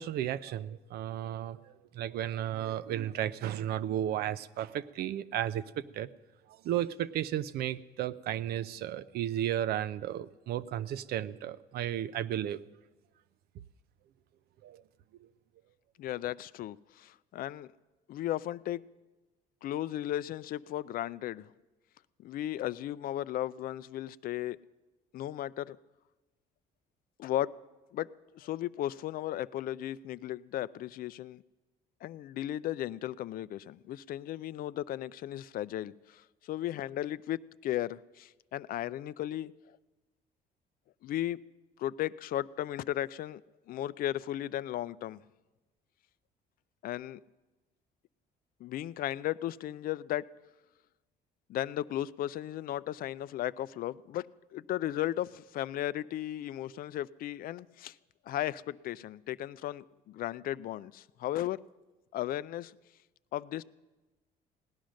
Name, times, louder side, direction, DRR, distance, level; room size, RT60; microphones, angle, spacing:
voice 1, 0.0-1.7 1.9-6.1 6.6-12.6 14.6-14.8, right 11 dB, 70° right, 16 dB, 0.5 m, -34 dB
voice 2, 16.0-17.7 18.1-18.8 19.6-21.5 22.2-24.6 25.1-25.8 27.2-27.6 27.9-31.4 32.0-39.5 41.0-41.4 41.8-43.4 43.7-45.2 46.8-47.2 48.6-50.3 51.5-58.0 58.3-61.6 62.1-62.7 63.3-63.6, left 13 dB, 60° left, 17 dB, 0.4 m, -35 dB
17.0 x 10.5 x 6.3 m, 1.1 s
cardioid pair, 110°, 17 cm